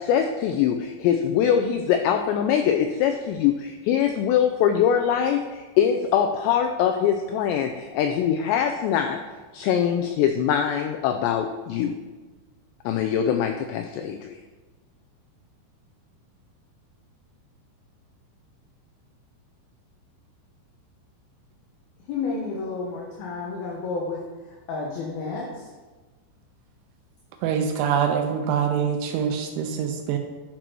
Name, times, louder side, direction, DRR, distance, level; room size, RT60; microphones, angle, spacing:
voice 1, 0.0-9.2 9.5-12.0 12.9-14.4, left 8 dB, 90° left, 5 dB, 2.5 m, -23 dB
voice 2, 22.1-24.2 24.5-25.7, left 4 dB, 70° left, -2 dB, 2.4 m, -31 dB
voice 3, 27.4-30.2, right 7 dB, 80° right, 4 dB, 3.0 m, -24 dB
12.0 x 6.1 x 4.5 m, 1.3 s
omnidirectional pair, 5.6 m